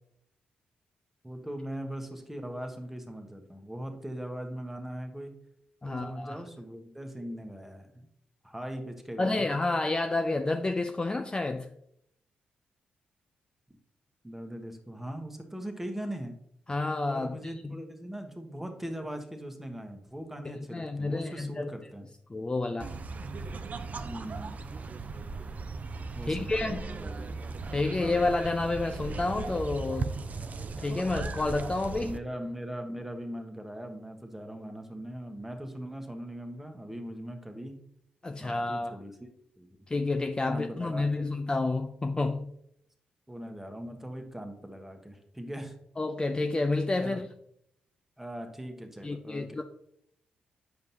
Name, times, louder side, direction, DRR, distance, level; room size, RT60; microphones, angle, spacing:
voice 1, 1.2-5.3 5.8-8.1 8.4-9.5 14.2-16.4 17.1-22.0 24.0-24.7 26.1-27.1 32.0-37.8 38.4-39.3 39.6-39.7 40.4-41.3 43.3-45.7 46.9-47.2 48.2-49.6, equal, 5° right, 1.3 m, -40 dB
voice 2, 5.8-6.4 9.2-11.7 16.7-17.5 20.5-21.7 22.3-22.9 26.2-26.9 27.7-30.1 30.8-32.1 38.2-39.0 39.9-42.5 46.0-47.3 49.0-49.6, left 2 dB, 25° left, 0.5 m, -29 dB
sound 1, 22.8-32.2, right 4 dB, 45° right, 0.5 m, -37 dB
7.8 x 5.2 x 2.9 m
supercardioid pair, 50°, 4 cm